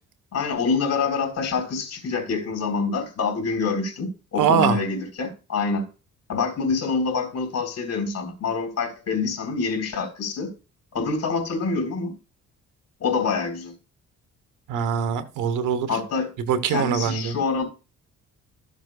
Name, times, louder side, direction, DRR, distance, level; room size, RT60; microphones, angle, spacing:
voice 1, 0.3-5.8 6.3-10.5 10.9-12.1 13.0-13.7 15.9-16.3 16.7-17.6, left 4 dB, 60° left, 3.7 m, -26 dB
voice 2, 4.4-4.8 14.7-15.9 16.5-17.3, right 8 dB, 85° right, 1.2 m, -22 dB
13.5 x 7.3 x 2.4 m
cardioid pair, 90°, 30 cm